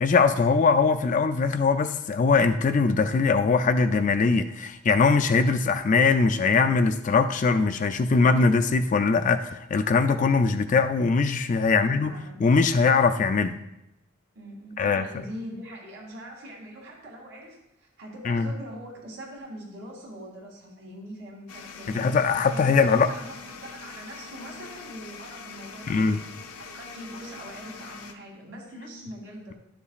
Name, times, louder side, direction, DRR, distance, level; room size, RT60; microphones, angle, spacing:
voice 1, 0.0-12.1 12.4-13.5 14.8-15.0 18.3-18.5 21.9-23.1 25.9-26.2, left 4 dB, 35° left, 0.3 m, -21 dB
voice 2, 11.7-12.4 14.3-22.1 22.5-26.2 26.6-29.5, equal, 65° right, 2.5 m, -42 dB
sound 1, 21.5-28.1, left 5 dB, 85° left, 0.7 m, -43 dB
10.5 x 7.0 x 2.4 m
head